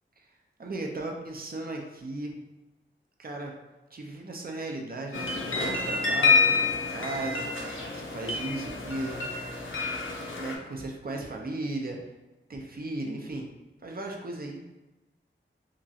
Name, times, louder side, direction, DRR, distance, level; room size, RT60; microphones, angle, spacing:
voice 1, 0.6-2.5 3.2-3.5 3.9-9.3 10.0-10.1 10.4-12.0 12.5-13.5 13.8-14.6, right 2 dB, 45° right, 1 dB, 0.5 m, -36 dB
sound 1, 5.1-10.6, left 4 dB, 75° left, 0.5 m, -28 dB
2.9 x 2.4 x 2.6 m, 1.1 s
wide cardioid pair, 75°, 20 cm